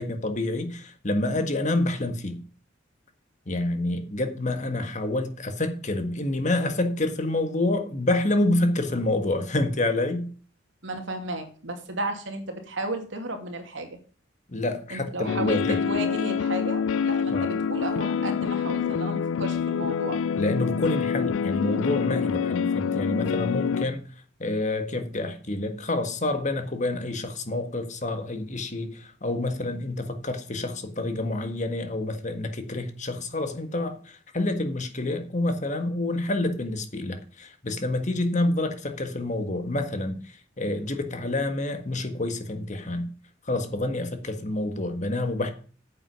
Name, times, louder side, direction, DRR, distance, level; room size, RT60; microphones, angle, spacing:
voice 1, 0.0-2.4 3.5-10.3 14.5-16.1 17.3-17.6 20.4-24.1 24.4-43.1 43.5-45.5, left 2 dB, 40° left, 1.6 m, -28 dB
voice 2, 10.8-14.0 14.9-20.2, right 1 dB, 75° right, 2.6 m, -33 dB
sound 1, 15.3-23.9, left 6 dB, 90° left, 0.4 m, -26 dB
9.4 x 7.6 x 5.3 m
head